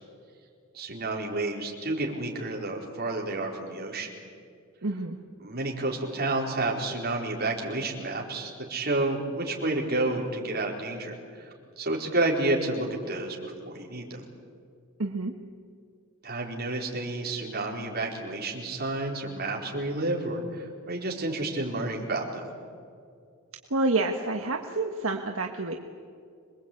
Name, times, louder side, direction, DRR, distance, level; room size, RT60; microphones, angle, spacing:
voice 1, 0.7-4.1 5.4-11.5 11.8-14.2 16.2-22.5, right 2 dB, 45° right, -1 dB, 4.5 m, -30 dB
voice 2, 4.8-5.2 15.0-15.3 23.7-25.7, right 2 dB, 65° right, 3 dB, 1.5 m, -28 dB
26.5 x 22.0 x 8.7 m, 2.3 s
head